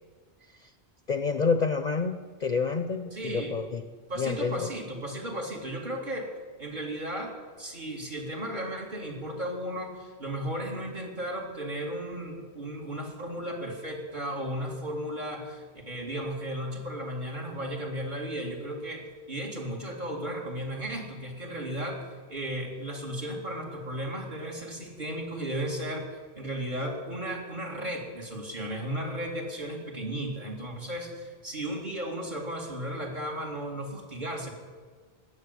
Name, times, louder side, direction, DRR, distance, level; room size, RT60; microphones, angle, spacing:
voice 1, 1.1-3.8 4.1-4.7, left 5 dB, 45° left, 9 dB, 0.7 m, -28 dB
voice 2, 3.1-3.6 4.1-6.3 6.6-34.5, right 1 dB, 45° right, 1 dB, 2.6 m, -35 dB
17.5 x 6.6 x 9.7 m, 1.5 s
omnidirectional pair, 1.1 m